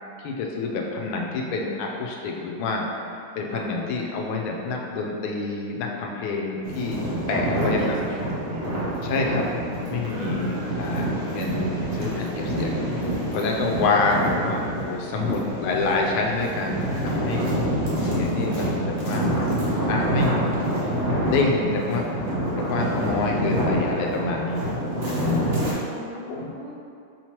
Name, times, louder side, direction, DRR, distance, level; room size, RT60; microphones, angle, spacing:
voice 1, 0.2-2.8 3.3-8.0 9.0-9.5 9.8-12.8 13.3-17.5 18.0-19.4 19.9-20.5 20.8-24.6 25.0-25.7 26.3-26.5, left 3 dB, 85° left, 0 dB, 1.5 m, -27 dB
sound 1, 6.6-25.7, right 1 dB, 65° right, 0.7 m, -27 dB
voice 2, 7.3-8.9 10.1-10.8 12.7-13.2 17.3-17.5 24.9-26.7, equal, 85° right, -3 dB, 1.5 m, -37 dB
5.5 x 3.0 x 2.9 m, 2.5 s
omnidirectional pair, 2.3 m